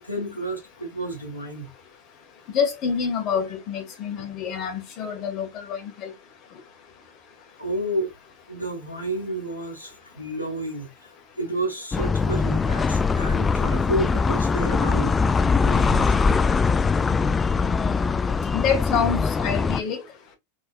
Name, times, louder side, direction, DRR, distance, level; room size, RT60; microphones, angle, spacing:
voice 1, 0.0-1.7 7.6-8.1 8.5-15.2 15.6-16.1, right 1 dB, 80° left, 1.6 m, -31 dB
voice 2, 2.5-6.1 18.5-20.0, left 6 dB, 35° left, 1.7 m, -27 dB
sound 1, 11.9-19.8, left 4 dB, 15° left, 0.4 m, -22 dB
4.2 x 4.2 x 2.5 m
figure-of-eight pair, 90°, 0 cm